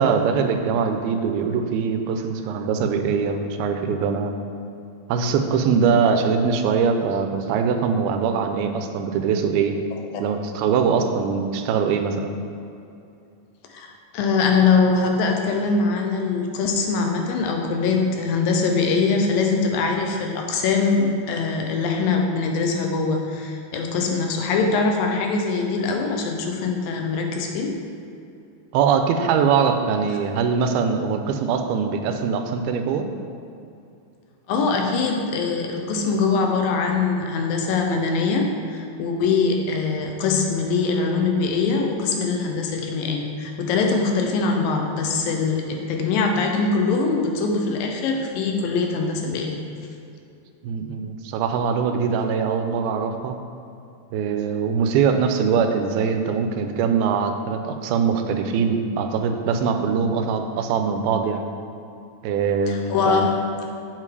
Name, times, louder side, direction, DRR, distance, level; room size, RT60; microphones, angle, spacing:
voice 1, 0.0-4.3 5.1-9.8 10.2-12.4 28.7-33.1 50.6-53.4 54.1-61.5 62.2-63.3, right 6 dB, 85° right, 6 dB, 2.5 m, -22 dB
voice 2, 13.7-27.8 34.5-49.6 52.3-52.4 62.7-63.5, left 4 dB, 75° left, 2 dB, 2.4 m, -22 dB
7.7 x 7.6 x 4.8 m, 2.6 s
omnidirectional pair, 4.3 m